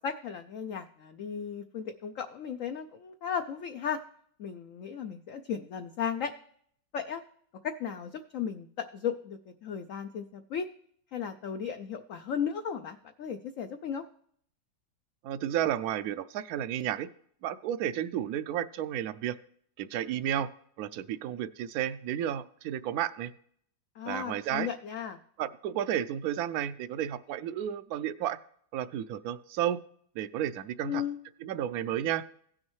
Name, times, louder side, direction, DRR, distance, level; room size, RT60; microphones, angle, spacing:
voice 1, 0.0-4.0 4.4-6.3 6.9-7.2 7.6-10.7 11.1-14.0 24.0-25.2 30.8-31.2, left 7 dB, 75° left, 8 dB, 0.7 m, -35 dB
voice 2, 15.2-17.1 17.4-19.3 19.8-20.5 20.8-23.3 24.1-24.7 25.4-28.4 28.7-29.8 30.2-31.0 31.4-32.2, right 11 dB, 70° right, 14 dB, 0.9 m, -32 dB
16.5 x 6.4 x 3.1 m, 0.63 s
omnidirectional pair, 2.0 m